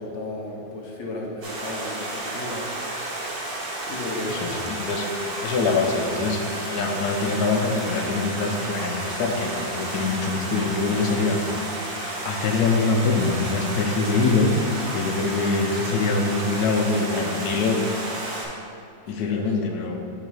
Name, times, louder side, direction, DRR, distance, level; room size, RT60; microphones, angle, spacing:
voice 1, 0.0-2.7 3.9-4.5 19.2-19.5, left 2 dB, 50° left, -2 dB, 1.1 m, -34 dB
Stream, 1.4-18.4, right 2 dB, 65° right, 1.7 m, -32 dB
voice 2, 4.3-6.4 6.7-11.4 12.2-14.5 14.9-17.9 19.1-20.0, left 4 dB, 75° left, 3 dB, 1.2 m, -24 dB
6.7 x 3.9 x 4.9 m, 2.5 s
omnidirectional pair, 1.7 m